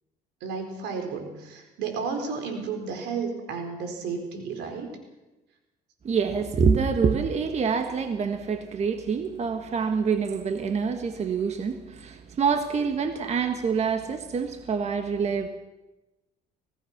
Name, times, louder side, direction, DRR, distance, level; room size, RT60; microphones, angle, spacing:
voice 1, 0.4-4.9, right 5 dB, 85° right, 4 dB, 4.6 m, -32 dB
voice 2, 6.0-15.5, right 5 dB, 40° right, 6 dB, 1.7 m, -26 dB
24.5 x 18.0 x 6.0 m, 1.0 s
cardioid pair, 110°, 17 cm